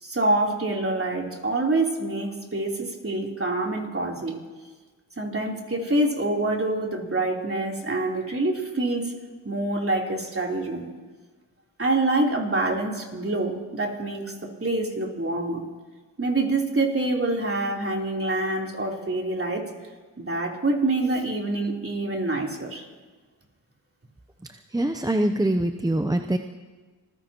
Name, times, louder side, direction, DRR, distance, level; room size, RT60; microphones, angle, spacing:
voice 1, 0.0-4.4 5.2-9.1 9.4-10.9 11.8-14.3 14.6-15.6 16.2-19.7 20.2-22.9, right 2 dB, 35° right, -1 dB, 3.5 m, -26 dB
voice 2, 24.7-26.4, right 1 dB, 10° right, 6 dB, 0.7 m, -23 dB
27.0 x 15.0 x 3.0 m, 1.4 s
cardioid pair, 50°, 39 cm